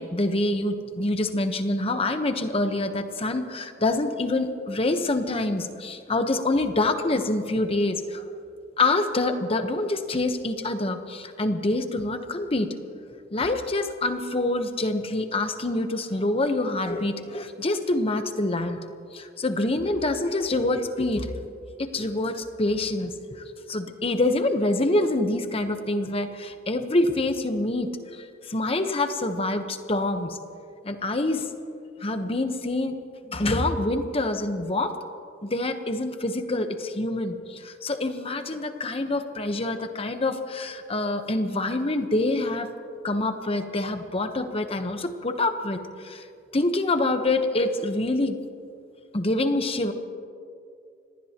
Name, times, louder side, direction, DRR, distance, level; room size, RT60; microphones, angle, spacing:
voice 1, 0.0-8.2 8.8-12.7 13.3-18.8 19.1-21.3 21.8-30.4 30.8-31.5 32.0-33.0 33.3-35.0 35.4-42.7 43.0-46.2 46.5-48.4 49.1-49.9, left 2 dB, 35° left, 7 dB, 1.0 m, -26 dB
26.0 x 19.0 x 3.0 m, 2.4 s
head